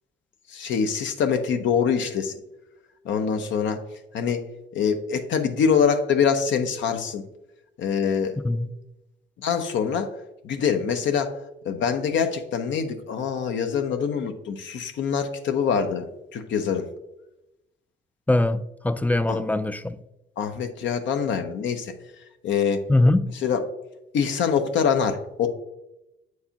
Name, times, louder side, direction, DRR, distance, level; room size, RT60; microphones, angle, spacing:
voice 1, 0.5-2.4 3.0-3.8 4.1-4.4 4.7-7.2 7.8-8.4 9.4-10.1 10.4-11.3 11.6-16.1 16.3-16.9 19.3-19.4 20.4-21.9 22.4-22.8 23.4-23.6 24.1-25.5, left 6 dB, 70° left, 0.7 m, -24 dB
voice 2, 18.3-20.0 22.9-23.3, left 2 dB, 10° left, 0.3 m, -22 dB
8.0 x 4.7 x 2.8 m
cardioid pair, 90°, 20 cm